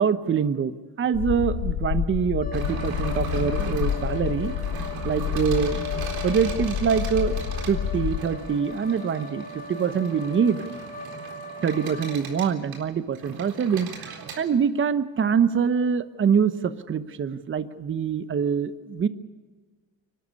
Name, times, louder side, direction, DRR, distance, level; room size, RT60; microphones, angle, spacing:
voice 1, 0.0-4.6 5.0-5.8 6.2-10.6 11.6-19.1, right 7 dB, 30° right, 13 dB, 1.0 m, -25 dB
sound 1, 1.1-8.2, left 8 dB, 80° left, 4.4 m, -29 dB
sound 2, 2.4-12.2, left 4 dB, 25° left, 1.5 m, -38 dB
sound 3, 2.5-14.4, right 4 dB, 65° right, 3.9 m, -38 dB
24.5 x 12.5 x 9.7 m, 1.4 s
cardioid pair, 105°, 39 cm